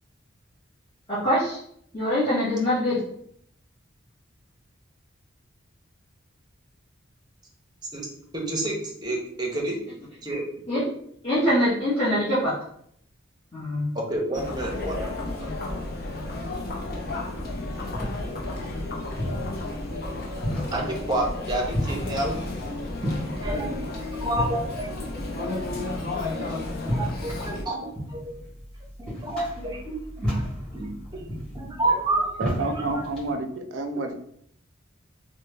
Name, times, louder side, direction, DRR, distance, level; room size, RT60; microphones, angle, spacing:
voice 1, 1.1-1.6 1.9-3.0 10.7-10.8 11.2-12.5 13.5-13.9, equal, 30° left, -12 dB, 1.1 m, -23 dB
voice 2, 8.3-9.8 10.2-10.4 14.1-15.5 20.7-22.4 23.4-24.9 25.7-25.8 26.1-26.5 26.9-28.3 29.0-30.4 30.7-31.2 31.5-32.9, right 2 dB, 20° right, -1 dB, 0.7 m, -29 dB
Chatter, 14.3-27.6, left 2 dB, 50° left, 0.6 m, -32 dB
sound 1, 17.5-33.3, equal, 5° left, 1.4 m, -34 dB
voice 3, 32.4-34.2, right 2 dB, 70° right, 6 dB, 0.4 m, -29 dB
3.2 x 2.1 x 3.3 m, 0.67 s
head